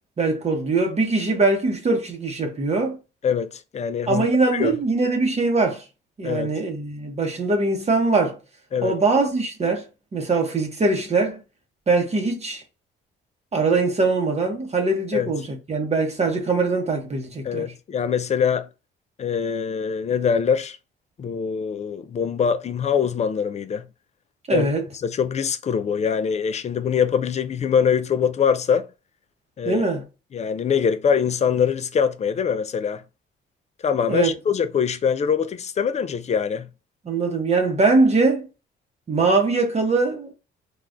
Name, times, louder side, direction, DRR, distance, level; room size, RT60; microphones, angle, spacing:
voice 1, 0.2-3.0 4.1-5.8 6.2-8.4 8.8-9.9 10.1-11.4 11.9-12.6 13.5-17.7 24.5-24.9 29.6-30.0 34.1-34.3 37.1-38.5 39.1-40.3, right 3 dB, 35° right, 0.8 m, -22 dB
voice 2, 3.2-4.3 4.5-4.7 6.2-6.5 8.7-9.0 15.1-15.3 17.4-18.7 19.2-20.8 21.2-23.8 24.5-24.7 25.0-28.9 29.6-29.8 30.3-33.0 33.8-36.7, left 7 dB, 35° left, 0.4 m, -23 dB
3.4 x 2.3 x 2.5 m
cardioid pair, 90°, 20 cm